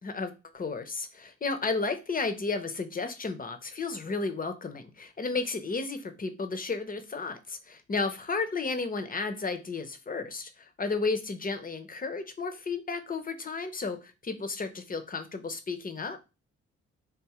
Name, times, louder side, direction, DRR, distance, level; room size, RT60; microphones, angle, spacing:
voice 1, 0.0-16.2, left 4 dB, 30° left, 8 dB, 0.7 m, -33 dB
3.6 x 2.6 x 3.0 m, 0.29 s
supercardioid pair, 55°, 30 cm